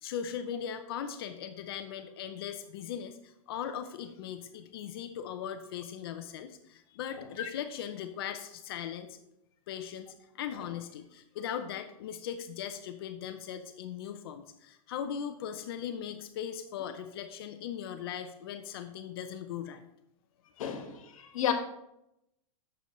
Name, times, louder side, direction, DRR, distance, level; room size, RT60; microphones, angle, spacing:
voice 1, 0.0-9.2 9.7-19.8, left 9 dB, 45° left, 8 dB, 0.5 m, -39 dB
voice 2, 7.2-7.5 10.6-10.7 20.6-21.5, left 9 dB, 65° left, 6 dB, 1.3 m, -33 dB
8.7 x 6.9 x 3.1 m, 0.83 s
supercardioid pair, 170°, 18 cm